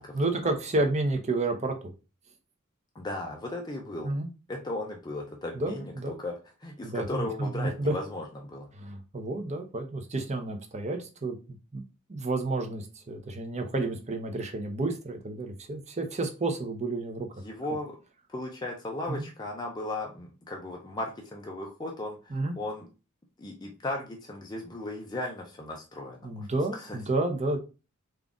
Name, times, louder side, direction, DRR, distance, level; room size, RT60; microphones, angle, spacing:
voice 1, 0.1-1.9 4.0-4.3 5.5-6.2 6.8-7.9 8.8-11.4 11.7-11.8 12.1-17.3 19.1-19.3 22.3-22.6 26.2-27.6, right 2 dB, 30° right, 0.7 m, -30 dB
voice 2, 2.9-4.1 4.5-6.3 6.6-8.7 17.4-18.0 18.3-22.9 23.4-26.5 26.7-27.0, left 2 dB, 20° left, 0.5 m, -36 dB
3.8 x 2.4 x 3.5 m
head